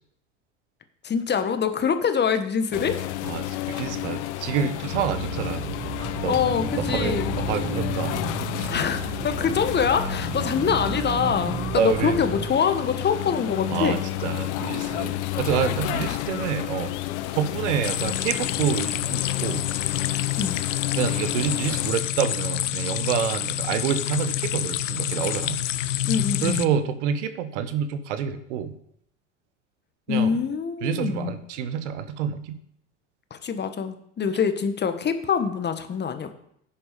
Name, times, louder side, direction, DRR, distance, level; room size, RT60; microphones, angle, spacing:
voice 1, 1.0-3.0 6.2-7.3 8.7-13.9 20.4-20.6 26.0-26.7 30.1-31.4 33.3-36.3, left 6 dB, 30° left, 8 dB, 1.4 m, -25 dB
sound 1, 2.7-21.9, left 14 dB, 65° left, 0.9 m, -31 dB
voice 2, 3.2-5.7 6.2-6.4 6.9-8.2 8.6-8.7 11.7-12.2 13.7-16.9 17.3-19.6 21.0-25.6 26.4-28.7 30.1-30.4 30.8-32.6, right 8 dB, 70° right, 11 dB, 1.2 m, -28 dB
sound 2, 4.9-12.5, right 8 dB, 35° right, 1.3 m, -34 dB
sound 3, 17.8-26.7, left 13 dB, 80° left, 0.6 m, -27 dB
10.5 x 7.3 x 5.3 m, 0.72 s
hypercardioid pair, 80°, 37 cm